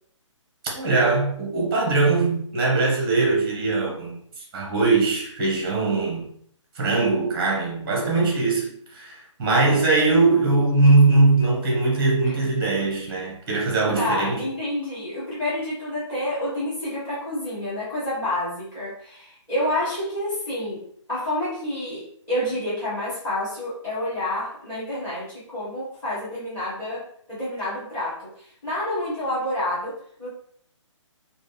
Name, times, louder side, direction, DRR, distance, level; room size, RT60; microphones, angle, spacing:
voice 1, 0.6-4.2 4.5-6.3 6.7-14.4, right 3 dB, 15° right, 0.9 m, -21 dB
voice 2, 14.0-30.3, left 1 dB, 15° left, 1.4 m, -29 dB
3.4 x 2.4 x 3.3 m
hypercardioid pair, 170°, 16 cm